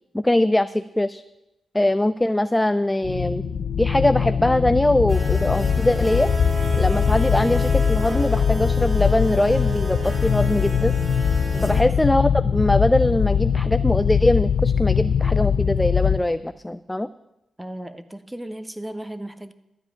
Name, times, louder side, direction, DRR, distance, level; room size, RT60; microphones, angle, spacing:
voice 1, 0.1-1.2 1.7-3.4 3.8-6.3 6.7-11.0 11.6-17.1, left 1 dB, 15° left, 13 dB, 0.4 m, -22 dB
sound 1, 3.0-16.2, left 7 dB, 75° left, 0.5 m, -22 dB
sound 2, 5.1-11.8, right 1 dB, 35° right, 2.9 m, -32 dB
voice 2, 11.5-11.9 17.6-19.5, right 1 dB, 10° right, 12 dB, 0.9 m, -35 dB
12.5 x 5.0 x 8.4 m, 0.93 s
supercardioid pair, 50°, 0 cm